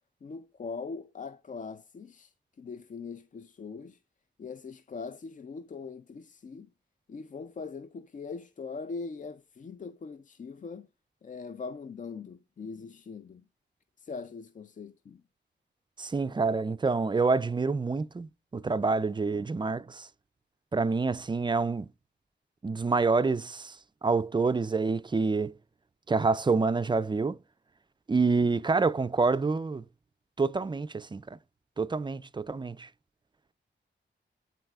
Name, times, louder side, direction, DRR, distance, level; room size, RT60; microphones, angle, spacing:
voice 1, 0.2-4.0 4.4-6.7 7.1-10.9 11.2-13.4 14.0-15.2, left 4 dB, 40° left, 0.4 m, -41 dB
voice 2, 16.0-20.1 20.7-21.9 22.6-23.8 24.0-25.6 26.1-27.4 28.1-29.8 30.4-31.4 31.8-32.9, right 4 dB, 25° right, 0.3 m, -27 dB
12.0 x 4.1 x 2.3 m
wide cardioid pair, 85°, 19 cm